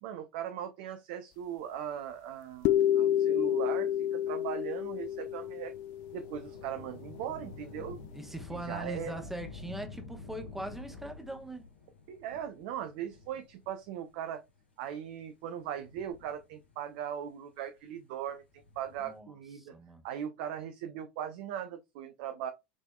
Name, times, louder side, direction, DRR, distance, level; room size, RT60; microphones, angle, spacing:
voice 1, 0.0-5.7 6.1-8.0 8.5-9.3 12.1-14.4 14.8-19.7 20.0-22.5, right 9 dB, 55° right, 0.6 m, -39 dB
sound 1, 2.6-6.7, left 11 dB, 50° left, 0.4 m, -29 dB
Thunder / Rain, 4.9-13.8 14.6-14.7 15.6-16.9 18.4-19.2, left 4 dB, 75° left, 1.9 m, -49 dB
voice 2, 8.1-11.7 19.0-19.3 19.6-20.0, right 1 dB, 5° right, 1.1 m, -41 dB
5.2 x 3.4 x 2.2 m
figure-of-eight pair, 80°, 6 cm